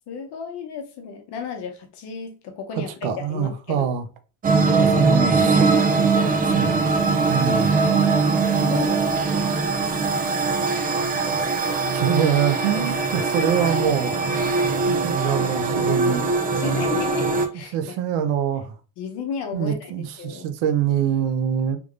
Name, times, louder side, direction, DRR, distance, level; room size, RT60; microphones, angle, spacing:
voice 1, 0.1-4.0 5.9-6.8 8.3-10.8 11.6-12.0 16.5-17.9 19.0-19.9 20.2-20.5, left 6 dB, 60° left, 0.8 m, -34 dB
voice 2, 3.0-4.1 4.8-5.8 6.5-6.8 7.3-7.7 11.9-14.2 14.9-16.3 17.7-18.8 19.5-21.8, right 8 dB, 80° right, 0.7 m, -24 dB
sound 1, 4.4-17.5, right 4 dB, 20° right, 0.3 m, -21 dB
3.4 x 3.2 x 2.4 m
cardioid pair, 120°, 46 cm